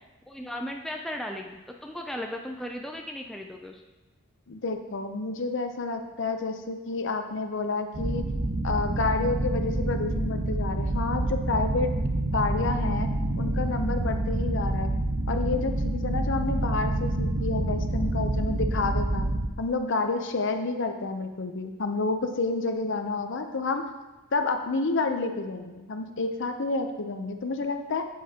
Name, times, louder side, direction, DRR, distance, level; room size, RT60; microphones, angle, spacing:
voice 1, 0.0-3.8, left 1 dB, ahead, 1 dB, 0.3 m, -36 dB
voice 2, 4.5-8.2 8.6-11.9 12.3-13.1 13.4-14.9 15.3-19.3 19.6-23.8 24.3-28.0, left 3 dB, 55° left, 6 dB, 0.6 m, -29 dB
sound 1, 7.9-19.5, right 1 dB, 50° right, 0.9 m, -27 dB
8.6 x 8.4 x 2.8 m, 1.1 s
head